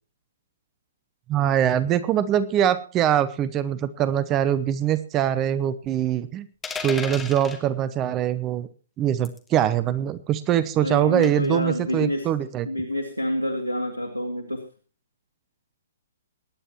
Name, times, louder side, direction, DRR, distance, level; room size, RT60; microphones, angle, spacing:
voice 1, 1.3-6.5 6.8-8.7 9.0-12.7, right 10 dB, 20° right, 15 dB, 0.7 m, -23 dB
sound 1, 6.6-7.6 9.2-9.5 11.2-11.6, left 5 dB, 10° left, 1.6 m, -34 dB
voice 2, 10.8-12.3 12.6-14.7, left 1 dB, 90° right, 6 dB, 2.0 m, -27 dB
22.5 x 10.0 x 3.0 m, 0.37 s
figure-of-eight pair, 120°, 0 cm